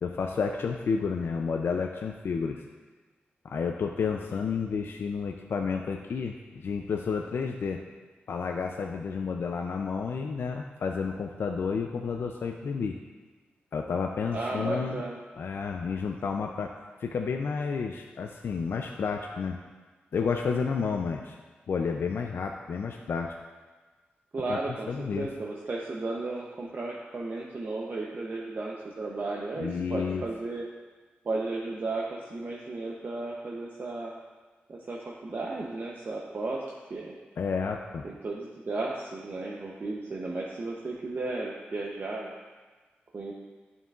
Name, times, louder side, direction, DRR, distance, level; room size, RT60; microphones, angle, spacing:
voice 1, 0.0-2.6 3.4-7.8 8.3-13.0 13.7-15.0 15.4-16.7 17.0-19.6 20.1-21.4 21.7-23.4 24.5-24.6 24.9-25.3 29.6-30.2 37.4-38.1, left 5 dB, 70° left, 2 dB, 0.4 m, -31 dB
voice 2, 14.3-15.2 24.3-30.6 31.2-34.1 34.7-36.6 36.9-37.2 38.0-42.4 43.1-43.3, right 2 dB, 50° right, -2 dB, 0.7 m, -34 dB
9.2 x 5.5 x 2.4 m, 1.4 s
cardioid pair, 60°, 4 cm